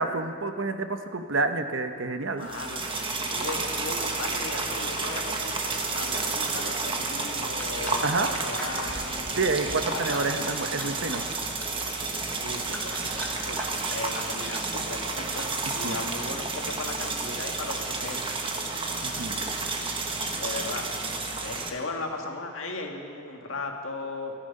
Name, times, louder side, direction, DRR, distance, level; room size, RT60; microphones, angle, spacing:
voice 1, 0.0-2.5 8.0-8.3 9.4-11.3 15.8-16.0 19.0-19.4, right 3 dB, 70° right, 7 dB, 1.0 m, -28 dB
voice 2, 2.4-9.4 9.9-10.3 12.3-18.2 20.4-20.9 21.4-24.4, left 3 dB, 85° left, 2 dB, 1.9 m, -37 dB
sound 1, 2.4-21.7, right 3 dB, 25° right, 1.2 m, -31 dB
sound 2, 7.4-14.9, left 1 dB, 10° left, 1.5 m, -44 dB
25.0 x 10.5 x 5.4 m, 2.3 s
head